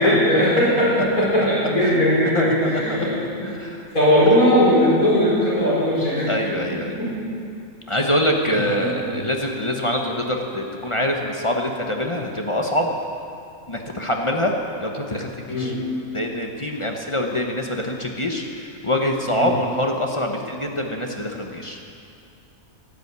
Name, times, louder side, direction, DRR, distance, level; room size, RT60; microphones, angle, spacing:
voice 1, 0.0-3.2 3.5-3.6 3.9-6.3 8.5-9.1 15.5-15.7 19.3-19.5, equal, 70° left, -8 dB, 5.3 m, -19 dB
voice 2, 2.3-3.1 3.4-3.9 6.3-7.0 7.9-12.9 13.7-14.5 14.8-15.7 16.1-21.9, left 1 dB, 25° left, 1 dB, 1.1 m, -25 dB
12.0 x 11.5 x 8.2 m, 2.5 s
omnidirectional pair, 1.5 m